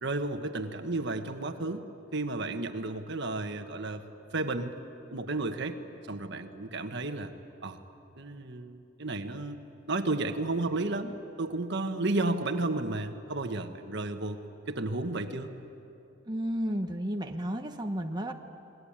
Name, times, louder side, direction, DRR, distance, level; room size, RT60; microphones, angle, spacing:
voice 1, 0.0-1.8 2.1-4.0 4.3-4.7 5.1-5.8 6.1-7.3 7.6-7.8 8.2-9.6 9.9-14.4 14.7-15.5, right 2 dB, 60° right, 7 dB, 1.5 m, -32 dB
voice 2, 16.3-18.3, equal, 20° right, 3 dB, 1.1 m, -32 dB
29.0 x 20.5 x 8.9 m, 2.8 s
head